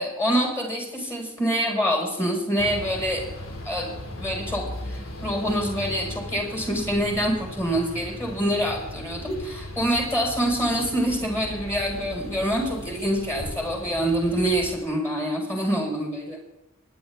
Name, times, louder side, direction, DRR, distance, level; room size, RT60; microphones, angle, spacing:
voice 1, 0.0-3.2 3.7-3.9 4.1-16.4, equal, 10° left, -1 dB, 5.1 m, -26 dB
sound 1, 2.6-14.8, left 1 dB, 70° left, 2.5 m, -37 dB
27.0 x 10.5 x 3.6 m, 0.97 s
head